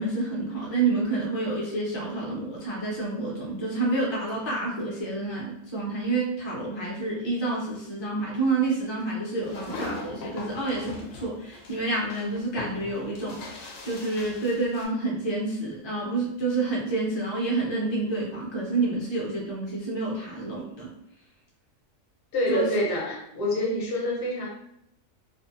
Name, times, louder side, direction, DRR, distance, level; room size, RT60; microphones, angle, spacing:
voice 1, 0.0-20.9 22.5-22.7, right 3 dB, 30° left, -4 dB, 0.6 m, -28 dB
sound 1, 9.4-14.9, left 3 dB, 75° left, 0.9 m, -40 dB
voice 2, 22.3-24.5, left 1 dB, 45° left, -3 dB, 0.9 m, -27 dB
2.6 x 2.3 x 2.5 m, 0.77 s
omnidirectional pair, 1.4 m